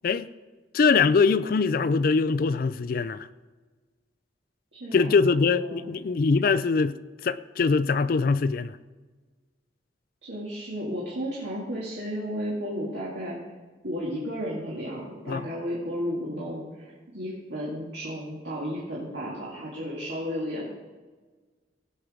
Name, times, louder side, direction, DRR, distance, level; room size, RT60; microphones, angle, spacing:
voice 1, 0.7-3.3 4.9-7.0 7.2-8.8 15.3-15.5, left 4 dB, 50° left, 0.4 m, -23 dB
voice 2, 4.7-5.9 10.2-13.4 13.8-20.7, equal, 70° right, 2.2 m, -33 dB
17.0 x 6.1 x 5.0 m
head